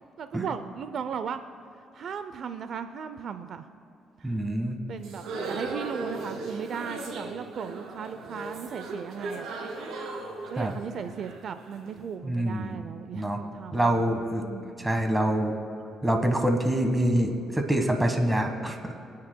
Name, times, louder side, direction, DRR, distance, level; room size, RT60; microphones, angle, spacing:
voice 1, 0.2-1.4 1.9-3.7 4.2-4.4 4.9-9.5 10.5-14.9, right 7 dB, 60° right, 10 dB, 0.5 m, -37 dB
voice 2, 4.2-4.8 10.6-10.7 12.2-12.8 13.1-13.4 13.7-14.4 14.8-15.5 16.0-18.9, right 1 dB, 15° right, 4 dB, 1.4 m, -25 dB
sound 1, 5.0-12.0, right 3 dB, 85° right, 2.3 m, -37 dB
25.0 x 9.6 x 2.2 m, 2.5 s
cardioid pair, 90°, 0 cm